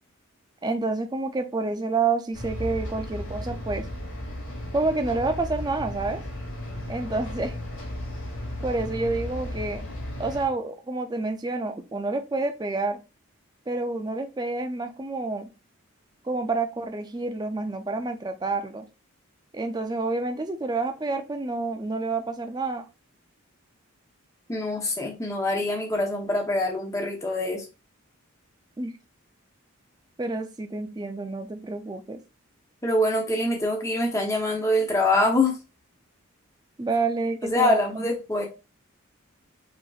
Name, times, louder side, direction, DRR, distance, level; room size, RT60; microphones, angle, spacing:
voice 1, 0.6-3.9 4.7-6.2 6.9-7.6 8.6-9.8 10.2-13.0 13.7-15.5 16.2-18.9 19.5-22.8 28.8-29.0 30.2-32.2 36.8-38.1, right 3 dB, 20° right, 7 dB, 0.4 m, -28 dB
sound 1, 2.3-10.5, left 1 dB, 65° left, 2.1 m, -35 dB
voice 2, 24.5-27.6 32.8-35.6 37.4-38.5, left 1 dB, 15° left, 1 dB, 0.8 m, -24 dB
4.8 x 3.0 x 2.4 m, 0.30 s
head